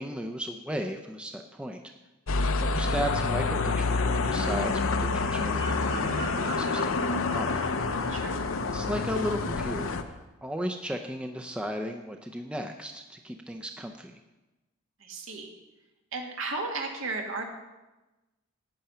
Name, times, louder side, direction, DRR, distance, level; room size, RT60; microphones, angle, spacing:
voice 1, 0.0-1.8 2.6-7.6 8.7-14.2, equal, 5° right, 4 dB, 0.5 m, -35 dB
sound 1, 2.3-10.0, left 3 dB, 75° left, 0.8 m, -28 dB
Bird vocalization bird call bird song, 5.3-8.8 9.1-9.5, right 4 dB, 35° right, 1.9 m, -43 dB
voice 2, 15.0-15.5 16.1-17.4, right 3 dB, 70° right, 2 dB, 1.9 m, -34 dB
10.5 x 9.0 x 5.6 m, 1.1 s
head